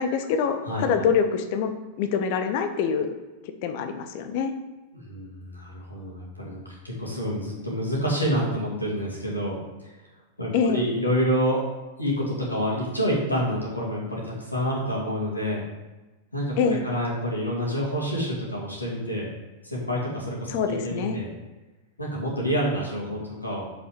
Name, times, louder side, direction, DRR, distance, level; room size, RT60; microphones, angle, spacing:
voice 1, 0.0-3.1 3.6-4.5 10.5-10.9 16.6-16.8 20.5-21.2, left 6 dB, 50° left, 7 dB, 0.8 m, -25 dB
voice 2, 4.9-9.6 9.8-9.9 10.4-11.6 12.0-15.6 16.3-19.3 19.6-21.3 22.0-23.8, equal, 85° left, -4 dB, 2.3 m, -28 dB
6.9 x 5.7 x 5.0 m, 1.1 s
figure-of-eight pair, 90°, 0 cm